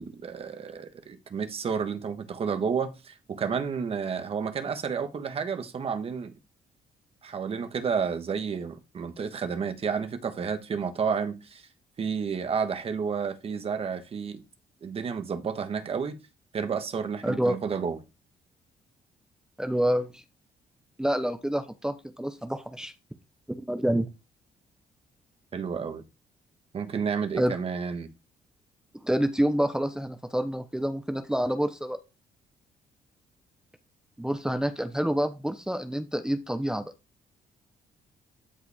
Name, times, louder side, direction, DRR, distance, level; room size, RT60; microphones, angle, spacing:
voice 1, 0.0-6.3 7.2-11.6 12.0-14.4 14.8-16.2 16.5-18.0 25.5-26.0 26.7-28.1, right 6 dB, 45° right, 1.4 m, -31 dB
voice 2, 17.2-17.6 19.6-20.2 21.0-22.9 23.5-24.1 27.4-27.5 29.0-32.0 34.2-36.8, equal, 5° right, 0.8 m, -27 dB
12.5 x 4.7 x 3.6 m
cardioid pair, 115°, 14 cm